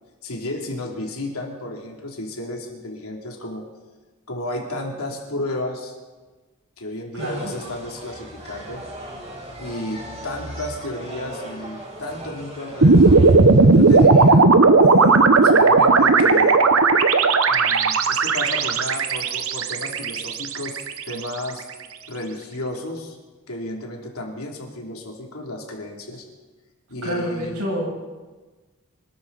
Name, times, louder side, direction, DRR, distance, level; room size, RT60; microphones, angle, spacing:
voice 1, 0.2-3.6 4.3-5.9 6.8-8.8 9.6-13.2 13.7-14.5 14.8-16.6 17.5-20.8 21.1-21.7 22.1-23.2 23.5-26.2 26.9-27.7, left 1 dB, 90° left, 0 dB, 3.1 m, -32 dB
voice 2, 7.1-7.5 27.0-27.9, equal, 90° right, -3 dB, 6.9 m, -27 dB
sound 1, 7.2-14.0, right 1 dB, 30° right, 4.1 m, -38 dB
sound 2, 12.8-21.1, right 3 dB, 70° right, 1.0 m, -15 dB
25.5 x 13.0 x 4.1 m, 1.3 s
head